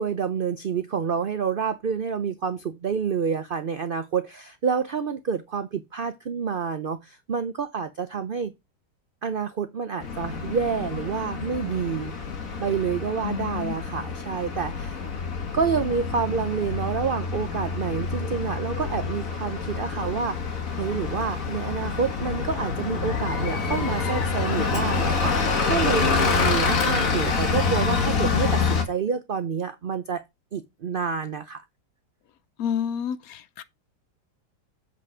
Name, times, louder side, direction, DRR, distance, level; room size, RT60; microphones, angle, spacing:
voice 1, 0.0-8.5 9.2-12.1 12.6-15.0 15.5-30.2 30.5-31.6, right 6 dB, 85° right, 0.4 m, -28 dB
Bus, 10.0-28.8, left 4 dB, 55° left, 1.6 m, -27 dB
voice 2, 13.2-13.7 32.6-33.6, left 8 dB, 70° left, 0.9 m, -29 dB
7.8 x 4.2 x 4.9 m
omnidirectional pair, 1.8 m